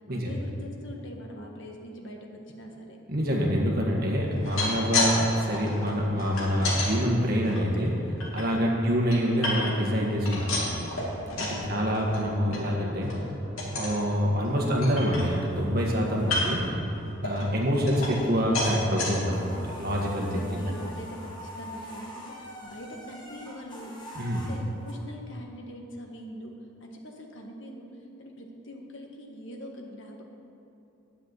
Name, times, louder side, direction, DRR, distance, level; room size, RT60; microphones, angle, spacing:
voice 1, 0.1-3.0 8.7-8.9 11.5-12.0 17.8-18.0 20.1-23.9 24.3-26.5 26.8-27.9 28.2-30.2, equal, 60° left, 1 dB, 1.5 m, -43 dB
voice 2, 3.1-8.0 8.3-10.9 11.4-13.1 13.6-16.6 17.2-20.3 20.5-20.7 24.2-24.4, equal, 45° right, -1 dB, 1.8 m, -26 dB
sound 1, 4.3-5.1 5.4-6.9 7.4-8.4 8.9-9.9 10.2-11.6 11.9-12.2 12.5-12.6 13.0-13.2 13.6-14.0 14.4-14.5 14.8-15.6 16.2-16.7 17.2-18.3 18.5-19.1 19.7-19.8 20.1-20.2, left 2 dB, 80° left, 2.8 m, -31 dB
sound 2, 11.6-17.2, right 1 dB, 15° right, 2.4 m, -41 dB
sound 3, 15.1-16.9 17.3-18.1 18.4-18.6 18.8-24.9, equal, 20° left, 1.7 m, -45 dB
9.9 x 7.3 x 8.3 m, 2.9 s
head